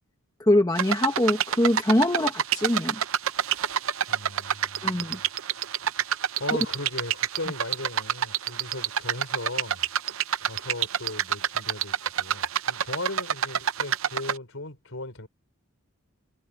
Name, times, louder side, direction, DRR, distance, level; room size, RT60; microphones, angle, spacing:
voice 1, 0.4-3.0 4.8-5.2, left 1 dB, 15° left, 1.3 m, -23 dB
sound 1, 0.8-14.4, right 9 dB, 65° right, 0.7 m, -28 dB
voice 2, 4.1-5.2 6.4-9.8 10.4-15.3, left 2 dB, 60° left, 4.5 m, -37 dB
head